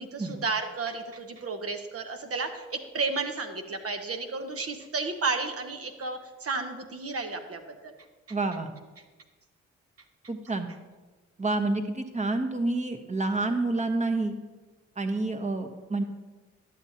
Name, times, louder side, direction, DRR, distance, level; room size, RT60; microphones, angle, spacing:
voice 1, 0.0-7.9, right 4 dB, 45° right, 5 dB, 0.9 m, -32 dB
voice 2, 8.3-8.7 10.3-10.7 11.4-14.4 15.0-16.0, right 2 dB, 20° right, 5 dB, 1.1 m, -28 dB
12.0 x 7.3 x 2.8 m, 1.3 s
hypercardioid pair, 40°, 34 cm